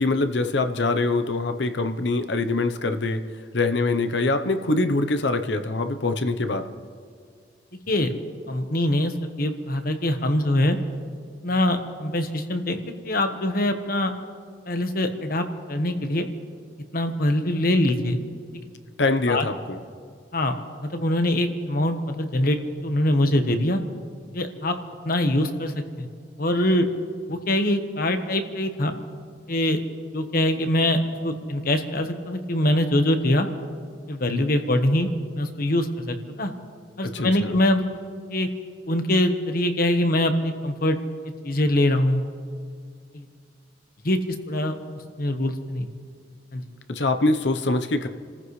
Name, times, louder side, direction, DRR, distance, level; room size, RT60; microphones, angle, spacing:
voice 1, 0.0-3.2 3.5-6.7 19.0-19.8 37.1-37.5 46.9-48.1, left 2 dB, 75° left, 8 dB, 0.9 m, -24 dB
voice 2, 8.5-10.8 11.4-14.1 14.7-16.3 16.9-18.2 19.3-19.5 20.3-20.6 20.8-23.8 24.3-24.8 25.0-26.1 26.4-26.9 27.3-29.0 29.5-29.8 30.1-33.5 34.1-35.1 35.3-36.5 37.0-37.8 38.3-38.5 38.9-41.0 41.4-42.2 43.1-43.2 44.0-44.2 44.5-44.7 45.2-45.9 46.5-46.6, left 1 dB, 55° left, 7 dB, 1.3 m, -23 dB
29.5 x 14.5 x 3.3 m, 2.1 s
head